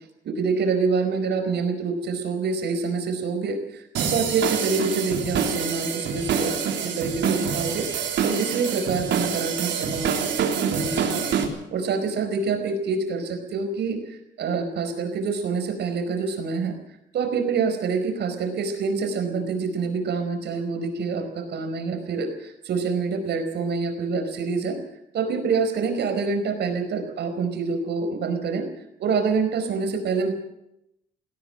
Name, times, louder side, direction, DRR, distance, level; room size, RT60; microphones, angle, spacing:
voice 1, 0.2-7.9 8.2-11.3 11.7-16.7 17.1-24.8 25.1-28.6 29.0-30.3, right 4 dB, 65° right, 7 dB, 4.9 m, -26 dB
sound 1, 3.9-11.4, right 7 dB, 90° right, 3.5 m, -26 dB
18.5 x 18.0 x 7.9 m, 0.82 s
cardioid pair, 155°, 18 cm